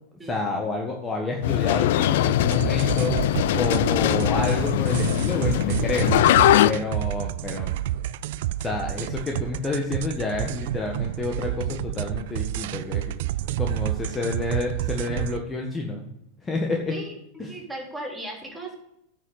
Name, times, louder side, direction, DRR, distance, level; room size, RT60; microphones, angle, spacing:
voice 1, 0.2-6.1 6.6-7.7 8.6-13.1 13.6-16.1 16.4-16.9 17.4-17.5, left 3 dB, 20° left, 1 dB, 1.6 m, -29 dB
sound 1, 1.4-6.7, left 13 dB, 60° left, 0.4 m, -21 dB
sound 2, 2.4-15.4, right 14 dB, 60° right, 0.4 m, -29 dB
voice 2, 17.5-18.8, right 1 dB, 10° right, -1 dB, 3.5 m, -36 dB
9.3 x 6.5 x 6.7 m, 0.79 s
hypercardioid pair, 95°, 0 cm